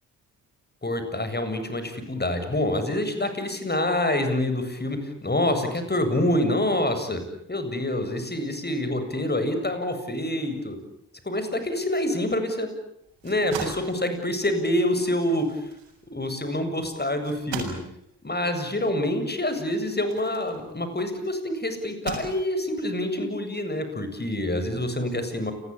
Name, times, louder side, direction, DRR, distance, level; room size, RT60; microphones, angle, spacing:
voice 1, 0.8-7.2 7.5-10.8 11.2-12.7 13.2-15.7 16.1-17.8 18.2-25.5, left 1 dB, 20° left, 8 dB, 7.5 m, -26 dB
Dropping Bag of Bread, 13.0-21.1 21.8-22.8, right 6 dB, 70° right, 7.3 m, -40 dB
29.5 x 22.0 x 8.6 m, 0.76 s
hypercardioid pair, 40°, 45 cm